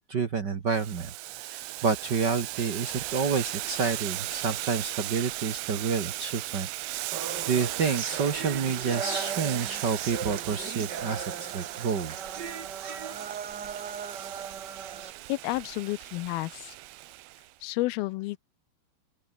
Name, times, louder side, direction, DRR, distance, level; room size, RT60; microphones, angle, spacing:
voice 1, 0.1-1.1 1.4-6.7 7.5-12.1, right 5 dB, 60° right, 1.1 m, -29 dB
Boiling, 0.7-17.5, right 18 dB, 80° right, 2.8 m, -37 dB
sound 1, 7.1-15.1, right 6 dB, 40° right, 1.6 m, -38 dB
voice 2, 15.3-16.7 17.6-18.4, left 20 dB, 80° left, 2.5 m, -31 dB
open air
omnidirectional pair, 4.5 m